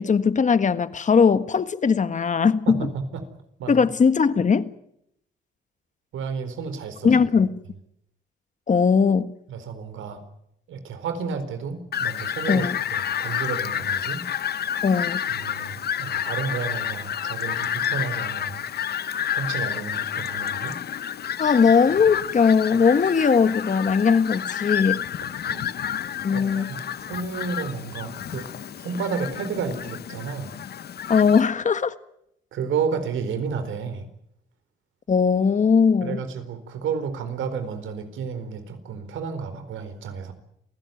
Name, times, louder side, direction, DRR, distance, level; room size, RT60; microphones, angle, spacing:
voice 1, 0.0-2.9 3.7-4.7 7.0-7.6 8.7-9.3 12.5-12.8 14.8-15.2 21.4-25.0 26.2-26.7 31.1-31.9 35.1-36.2, left 6 dB, 40° left, 1.6 m, -19 dB
voice 2, 2.7-3.3 3.6-3.9 6.1-7.2 9.5-10.2 10.7-14.2 15.3-18.6 19.3-20.8 25.4-25.7 26.3-28.5 28.8-30.5 32.5-34.1 36.0-40.3, right 6 dB, 80° right, 4.4 m, -31 dB
Fowl, 11.9-31.4, left 9 dB, 55° left, 0.9 m, -30 dB
27.5 x 16.5 x 9.4 m
cardioid pair, 90°, 20 cm